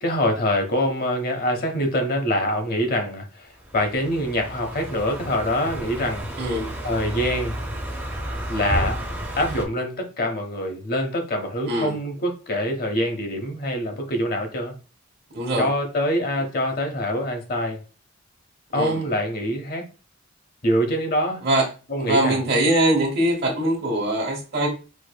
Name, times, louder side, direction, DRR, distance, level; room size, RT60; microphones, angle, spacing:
voice 1, 0.0-6.3 6.8-7.6 8.5-9.0 9.4-14.7 15.6-17.8 18.7-19.9 20.6-21.4 21.9-22.4, equal, 50° left, 0.8 m, -25 dB
Car passing by, 3.6-9.6, equal, 10° right, 0.6 m, -32 dB
voice 2, 6.4-6.7 11.7-11.9 15.3-15.7 18.7-19.0 21.4-21.7 22.0-24.7, right 1 dB, 55° right, 1.2 m, -22 dB
4.6 x 2.6 x 2.2 m
head